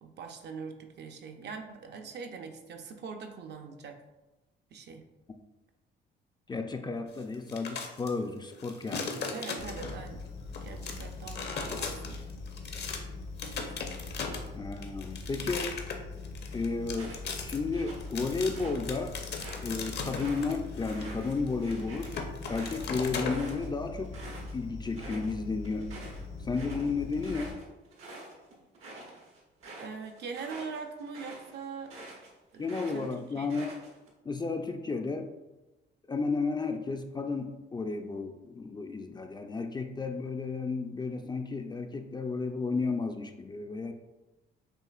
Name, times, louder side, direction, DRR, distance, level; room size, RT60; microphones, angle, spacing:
voice 1, 0.0-4.0 4.7-5.0 9.3-10.2 10.6-12.4 29.8-31.9 32.5-33.7, right 5 dB, 60° right, 5 dB, 0.5 m, -42 dB
voice 2, 6.5-9.1 14.5-15.7 16.5-19.2 19.6-22.1 22.5-24.1 24.5-25.9 26.4-27.6 32.6-33.7 34.3-35.3 36.1-43.9, left 4 dB, 20° left, 5 dB, 0.3 m, -33 dB
sound 1, 7.3-8.1 8.5-10.1 10.5-13.0 13.4-23.5, left 5 dB, 60° left, 0.7 m, -37 dB
sound 2, 9.6-27.5, left 3 dB, 85° left, 0.9 m, -42 dB
sound 3, 16.9-18.8 19.2-24.5 24.8-25.3 25.6-32.3 32.6-34.1, right 2 dB, 85° right, 1.1 m, -47 dB
6.5 x 2.4 x 2.4 m, 1.1 s
cardioid pair, 90°, 20 cm